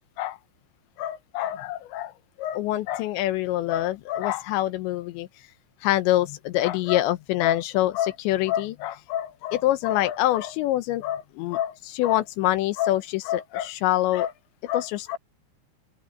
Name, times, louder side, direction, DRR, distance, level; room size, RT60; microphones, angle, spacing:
voice 1, 1.0-5.5 5.8-14.3 14.6-15.2, left 14 dB, 80° left, 3.1 m, -25 dB
open air
omnidirectional pair, 5.5 m